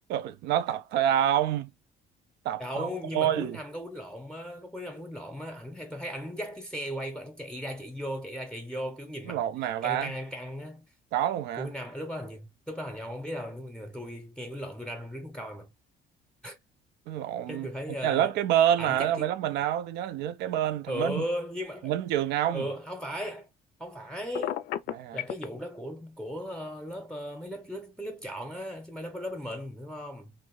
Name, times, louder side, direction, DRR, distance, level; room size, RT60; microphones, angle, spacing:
voice 1, 0.1-1.7 2.5-2.9 3.1-3.6 9.2-10.1 11.1-11.7 17.1-17.7 18.0-21.2 21.8-22.7 24.9-25.2, right 11 dB, 85° right, 0.4 m, -27 dB
voice 2, 2.6-9.4 9.8-10.9 11.6-15.7 16.4-16.6 17.5-18.3 18.8-19.3 20.9-22.0 22.5-23.5 23.8-24.7 25.1-30.3, equal, 5° left, 0.7 m, -37 dB
Telephone, 24.3-25.5, left 12 dB, 70° left, 0.4 m, -31 dB
2.7 x 2.6 x 3.0 m
cardioid pair, 110°, 17 cm